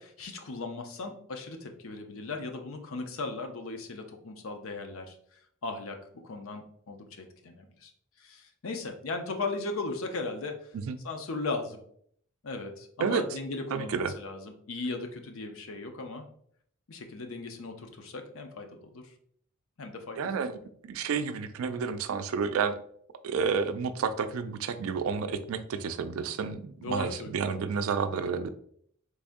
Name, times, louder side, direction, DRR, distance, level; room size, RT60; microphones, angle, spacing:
voice 1, 0.0-5.2 5.6-6.0 6.2-7.9 8.2-10.7 11.0-11.8 12.4-16.3 16.9-19.1 19.8-20.3 26.8-27.4, left 3 dB, 80° left, 5 dB, 0.6 m, -37 dB
voice 2, 13.7-14.1 20.2-20.5 20.8-22.8 23.2-28.5, right 5 dB, 85° right, 11 dB, 0.3 m, -30 dB
3.5 x 3.4 x 2.5 m, 0.64 s
head